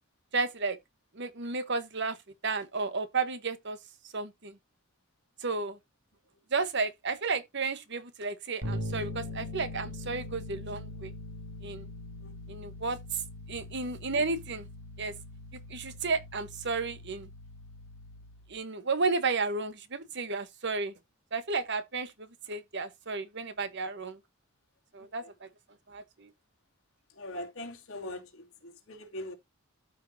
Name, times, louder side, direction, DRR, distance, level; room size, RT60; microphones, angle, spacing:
voice 1, 0.3-0.8 1.1-2.2 2.4-3.8 4.1-4.5 5.4-5.8 6.5-11.1 11.6-11.9 12.5-13.2 13.5-14.7 15.0-15.1 15.7-17.3 18.5-20.9 21.3-24.2 24.9-25.5 25.9-26.3, right 4 dB, 55° right, 1.2 m, -32 dB
Bass guitar, 8.6-18.5, left 1 dB, 80° right, 3.9 m, -42 dB
voice 2, 27.2-28.3 28.6-29.3, left 1 dB, 70° left, 2.7 m, -41 dB
13.5 x 5.7 x 2.8 m
head